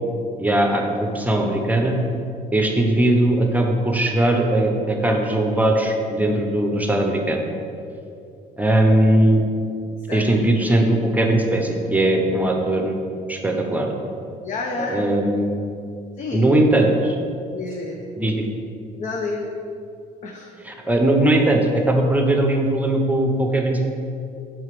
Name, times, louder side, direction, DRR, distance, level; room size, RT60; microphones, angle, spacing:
voice 1, 0.4-2.0 2.5-7.4 8.6-9.4 10.1-13.0 13.3-13.9 14.9-15.5 16.3-17.2 18.2-18.5 20.6-23.9, right 1 dB, 10° right, 2 dB, 0.8 m, -19 dB
voice 2, 14.4-15.1 16.2-16.6 17.5-18.0 19.0-19.6 20.2-20.5, left 3 dB, 45° left, 1 dB, 0.7 m, -29 dB
5.9 x 5.6 x 4.8 m, 2.5 s
cardioid pair, 110°, 17 cm